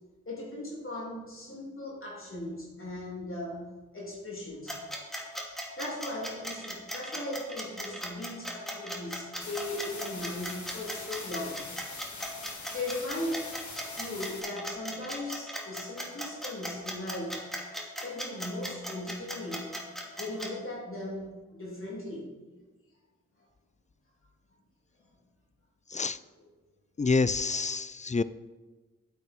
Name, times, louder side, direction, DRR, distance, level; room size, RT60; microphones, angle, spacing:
voice 1, 0.2-4.8 5.8-11.6 12.7-13.4 14.0-17.4 18.0-19.8 20.2-22.3 26.4-26.5 27.4-27.5, left 1 dB, 45° left, -4 dB, 3.3 m, -38 dB
sound 1, 4.7-20.5, equal, ahead, 2.6 m, -37 dB
sound 2, 9.4-14.4, left 3 dB, 70° left, 2.1 m, -43 dB
voice 2, 27.0-28.2, left 4 dB, 25° left, 16 dB, 0.5 m, -27 dB
9.1 x 8.5 x 4.5 m, 1.2 s
cardioid pair, 40°, 30 cm